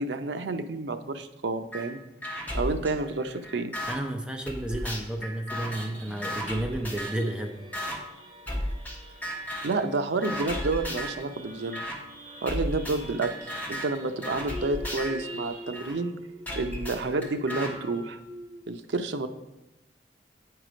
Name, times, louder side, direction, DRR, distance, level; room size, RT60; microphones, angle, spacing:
voice 1, 0.0-2.0 2.5-3.7 9.6-11.9 12.4-16.2 16.5-18.2 18.7-19.3, right 3 dB, 80° right, 8 dB, 0.6 m, -30 dB
sound 1, 1.7-1.9 2.2-4.0 4.5-7.3 7.7-8.0 8.5-9.0 9.2-9.8 10.2-11.2 11.7-12.0 12.5-15.9 16.5-17.7, equal, 10° left, 1.2 m, -34 dB
voice 2, 3.9-7.5, right 1 dB, 5° right, 3 dB, 0.5 m, -32 dB
sound 2, 5.4-18.7, equal, 35° right, 2.7 m, -46 dB
8.3 x 4.7 x 5.0 m, 0.97 s
head